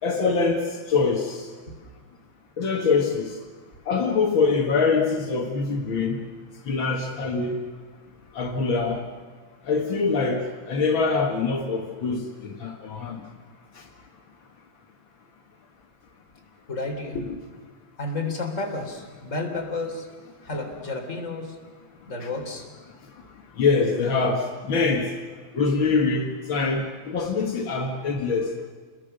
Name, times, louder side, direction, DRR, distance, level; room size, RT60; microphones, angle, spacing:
voice 1, 0.0-1.5 2.6-3.3 3.9-6.2 6.7-7.6 8.3-9.0 9.7-13.2 23.6-25.1 25.5-28.5, left 4 dB, 60° left, 2 dB, 1.2 m, -24 dB
voice 2, 16.7-17.3 18.0-20.1 20.4-21.6 22.1-22.7, left 2 dB, 20° left, 1 dB, 3.2 m, -31 dB
29.0 x 21.5 x 6.7 m, 1.5 s
omnidirectional pair, 4.9 m